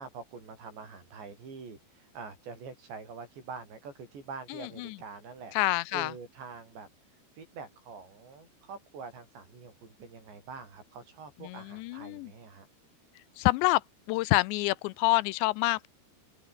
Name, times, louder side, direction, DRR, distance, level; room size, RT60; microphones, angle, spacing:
voice 1, 0.0-5.5 5.9-6.9 7.4-12.7, right 5 dB, 75° right, 9.4 m, -45 dB
voice 2, 5.6-6.1 11.5-12.3 13.4-13.8 14.1-15.9, left 21 dB, 85° left, 2.9 m, -27 dB
open air
omnidirectional pair, 5.1 m